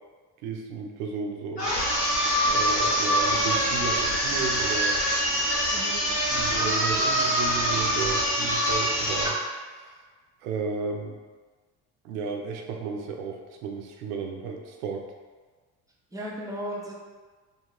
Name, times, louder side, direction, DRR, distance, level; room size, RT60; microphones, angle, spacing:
voice 1, 0.4-1.7 2.5-5.0 6.3-9.3 9.7-10.0 10.4-11.2 12.0-15.1, right 5 dB, 75° right, 2 dB, 0.6 m, -33 dB
sound 1, 1.6-9.4, equal, 90° left, 1.5 m, -24 dB
voice 2, 5.7-6.0 16.1-16.9, equal, 10° right, -4 dB, 0.6 m, -35 dB
2.7 x 2.3 x 2.9 m, 1.4 s
hypercardioid pair, 65°, 46 cm